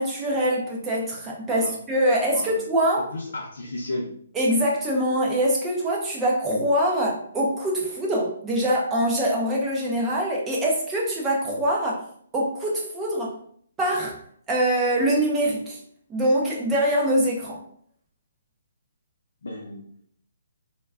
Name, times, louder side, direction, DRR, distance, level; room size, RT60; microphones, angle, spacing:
voice 1, 0.0-3.0 4.4-12.0 12.3-13.3 13.8-14.2 14.5-15.8 16.1-17.6, right 1 dB, 10° right, -3 dB, 0.5 m, -24 dB
voice 2, 3.0-4.1 19.4-19.8, left 2 dB, 85° left, -3 dB, 0.6 m, -33 dB
2.2 x 2.2 x 3.5 m, 0.62 s
hypercardioid pair, 170°, 0 cm